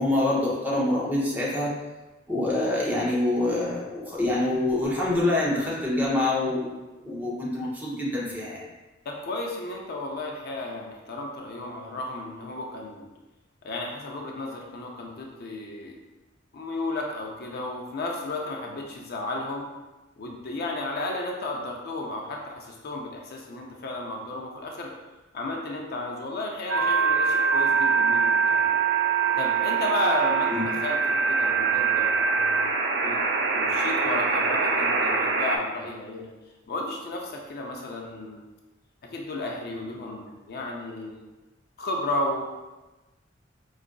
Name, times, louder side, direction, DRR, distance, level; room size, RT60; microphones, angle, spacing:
voice 1, 0.0-1.7 2.3-6.7 7.0-8.6 30.5-30.6, left 2 dB, 10° right, -6 dB, 0.7 m, -26 dB
voice 2, 9.1-13.1 13.6-16.0 16.5-19.7 20.2-24.9 25.3-28.7 29.3-32.3 33.0-33.2 33.5-36.3 36.7-38.4 39.1-41.2 41.8-42.4, left 2 dB, 55° left, 0 dB, 0.4 m, -33 dB
sound 1, 26.7-35.6, right 5 dB, 60° right, 0.4 m, -23 dB
4.8 x 2.4 x 2.2 m, 1.1 s
head